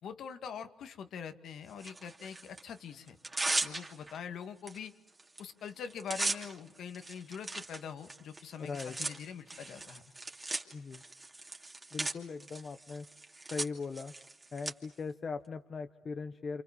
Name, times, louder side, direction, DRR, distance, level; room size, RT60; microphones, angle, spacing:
voice 1, 0.0-3.2 3.6-4.9 5.4-10.0, left 7 dB, 70° left, 8 dB, 2.0 m, -44 dB
Tearing, 1.8-2.6 3.1-4.2 4.7-4.8 5.1-5.4 5.7-14.7, right 2 dB, 20° right, 2.8 m, -38 dB
voice 2, 8.6-9.0 10.7-11.0 11.9-13.1 13.5-14.1 14.5-16.6, left 4 dB, 45° left, 8 dB, 1.1 m, -39 dB
29.0 x 28.0 x 7.4 m, 0.76 s
cardioid pair, 90°, 0 cm